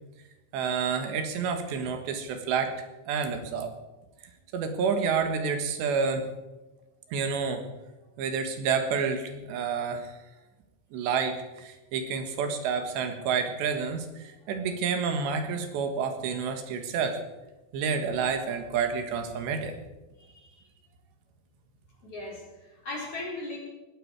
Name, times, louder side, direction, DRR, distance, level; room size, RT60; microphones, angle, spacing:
voice 1, 0.5-2.7 3.1-3.7 4.5-6.3 7.1-7.6 8.2-10.1 10.9-17.2 17.7-19.8, right 6 dB, 90° right, 7 dB, 3.8 m, -29 dB
voice 2, 20.2-20.6 22.0-23.6, left 2 dB, 35° left, -3 dB, 5.0 m, -39 dB
19.0 x 15.0 x 4.8 m, 1.1 s
omnidirectional pair, 4.8 m